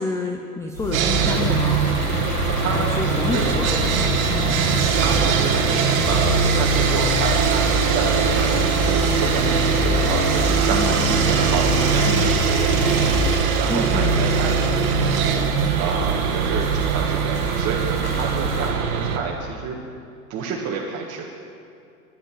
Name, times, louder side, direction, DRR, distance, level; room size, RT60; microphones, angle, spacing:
voice 1, 0.0-1.8 2.7-4.6 10.7-11.4 12.1-12.3 13.7-14.1, left 3 dB, 5° left, 2 dB, 0.4 m, -29 dB
sound 1, 0.7-18.7, right 2 dB, 75° left, 4.5 m, -30 dB
Sawing, 0.9-19.2, right 6 dB, 65° right, 1.6 m, -21 dB
sound 2, 1.3-13.4, left 7 dB, 35° left, 1.0 m, -30 dB
voice 2, 2.5-3.5 4.9-5.7 6.0-19.8 20.3-21.3, right 5 dB, 35° right, -3 dB, 1.7 m, -29 dB
11.0 x 10.5 x 9.1 m, 2.4 s
hypercardioid pair, 115°, 46 cm